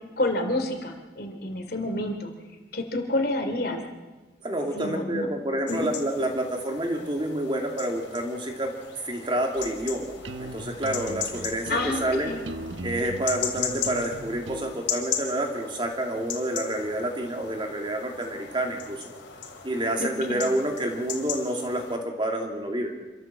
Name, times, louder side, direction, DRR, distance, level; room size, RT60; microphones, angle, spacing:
voice 1, 0.2-2.3 2.7-3.8 4.7-5.3 5.7-5.9 11.7-12.4 20.0-20.5, left 1 dB, 55° left, 5 dB, 2.9 m, -29 dB
voice 2, 4.4-8.7 9.0-10.1 10.4-12.3 12.8-19.0 19.6-22.9, right 1 dB, 25° right, 2 dB, 2.6 m, -28 dB
sound 1, 5.7-22.0, left 8 dB, 85° left, 3.2 m, -37 dB
sound 2, 9.6-14.8, right 2 dB, 90° right, 1.2 m, -39 dB
26.5 x 13.5 x 7.5 m, 1.3 s
head